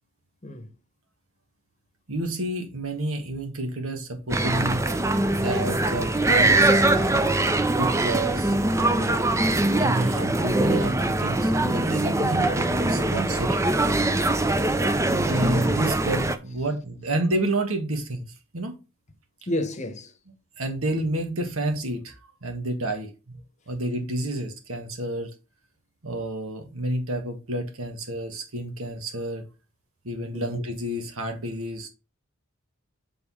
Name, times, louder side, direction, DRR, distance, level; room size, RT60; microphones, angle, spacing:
voice 1, 2.1-4.8 5.4-8.5 9.6-13.6 15.2-18.2 18.5-18.8 20.6-23.4 23.7-25.3 26.0-29.4 30.0-31.9, right 1 dB, 85° right, 1.5 m, -29 dB
sound 1, 4.3-16.4, right 2 dB, 15° right, 0.5 m, -22 dB
voice 2, 8.9-9.2 14.0-14.3 19.5-20.1 30.3-30.5, left 1 dB, 35° left, 0.9 m, -32 dB
6.8 x 3.8 x 3.6 m
head